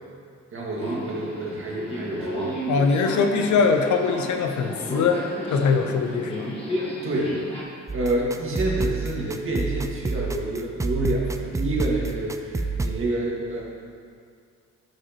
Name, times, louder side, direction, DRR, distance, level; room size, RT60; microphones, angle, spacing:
voice 1, 0.5-2.6 7.0-7.4 7.9-13.6, right 2 dB, 45° right, -3 dB, 1.8 m, -28 dB
Subway metro underground, 0.8-7.6, equal, 20° left, 1.7 m, -33 dB
voice 2, 2.7-6.6, left 5 dB, 70° left, 5 dB, 0.8 m, -22 dB
sound 1, 7.9-13.0, right 3 dB, 10° right, 0.3 m, -29 dB
12.0 x 5.0 x 2.9 m, 2.3 s
cardioid pair, 90°, 30 cm